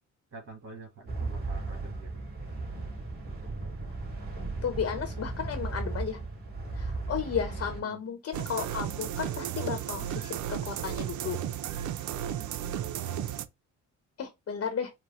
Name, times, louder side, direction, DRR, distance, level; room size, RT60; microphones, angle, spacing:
voice 1, 0.3-2.2 7.8-8.0 12.2-12.9, right 3 dB, 50° right, 1.6 m, -48 dB
sound 1, 1.1-7.8, right 3 dB, 30° right, 2.6 m, -36 dB
voice 2, 4.6-6.2 6.7-11.4 11.7-11.8 14.2-14.9, left 7 dB, 50° left, 0.9 m, -34 dB
sound 2, 8.3-13.5, right 10 dB, 70° right, 0.6 m, -34 dB
4.8 x 2.2 x 3.0 m
cardioid pair, 90°, 30 cm